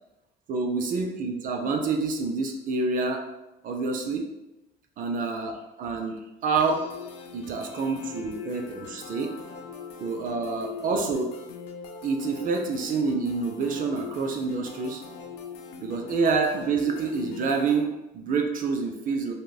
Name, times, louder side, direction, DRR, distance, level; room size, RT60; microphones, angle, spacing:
voice 1, 0.5-3.3 3.6-4.3 5.0-6.9 7.3-9.4 10.0-11.4 12.0-15.0 15.8-19.3, right 4 dB, 55° right, 4 dB, 0.4 m, -27 dB
sound 1, 6.5-17.8, left 6 dB, 85° left, 0.4 m, -41 dB
5.0 x 2.0 x 2.3 m, 0.97 s
cardioid pair, 110°, 17 cm